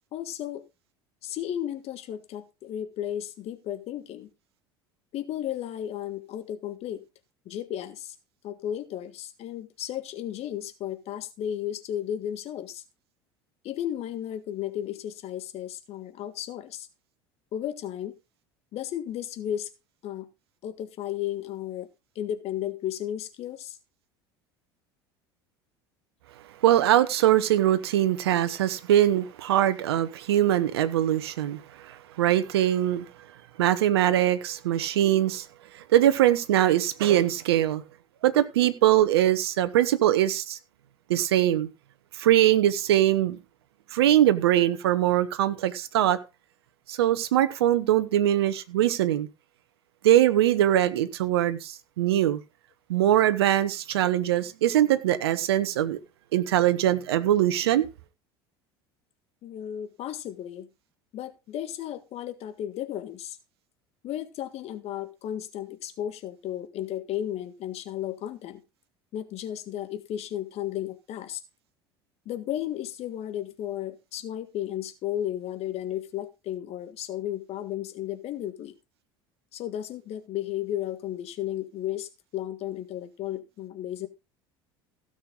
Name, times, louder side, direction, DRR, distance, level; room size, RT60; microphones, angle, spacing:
voice 1, 0.1-0.6 1.2-4.3 5.1-7.0 7.5-8.2 8.4-12.8 13.6-16.9 17.5-18.1 18.7-19.7 20.0-20.3 20.6-21.9 22.2-23.8 48.1-48.2 59.4-60.7 61.1-63.4 64.0-68.6 69.1-71.4 72.3-78.7 79.5-84.1, left 11 dB, 50° left, 1.7 m, -34 dB
voice 2, 26.6-33.1 33.6-35.5 35.7-37.8 38.2-40.6 41.1-41.7 42.1-43.4 43.9-46.2 46.9-49.3 50.0-52.4 52.9-56.0 56.3-57.9, right 12 dB, 80° right, 1.0 m, -22 dB
16.5 x 6.6 x 3.8 m
hypercardioid pair, 70°, 13 cm